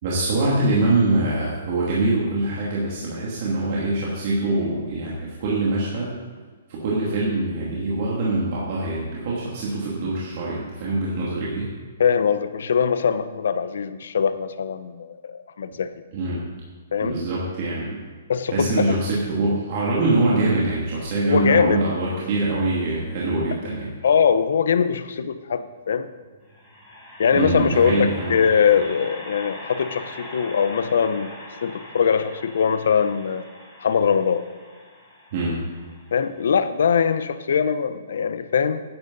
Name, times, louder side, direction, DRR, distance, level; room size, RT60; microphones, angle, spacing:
voice 1, 0.0-6.1 6.7-11.7 16.1-16.4 17.0-18.0 18.5-23.9 27.3-28.4 35.3-35.6, right 2 dB, 40° right, -6 dB, 2.4 m, -24 dB
voice 2, 12.0-15.9 16.9-17.2 18.3-19.0 21.3-21.8 24.0-26.1 27.2-31.3 31.6-33.5 33.8-34.5 36.1-38.8, left 7 dB, 70° left, 12 dB, 0.7 m, -21 dB
sound 1, 25.5-37.3, left 1 dB, 10° left, 3.2 m, -42 dB
12.0 x 10.5 x 4.0 m, 1.5 s
hypercardioid pair, 170°, 0 cm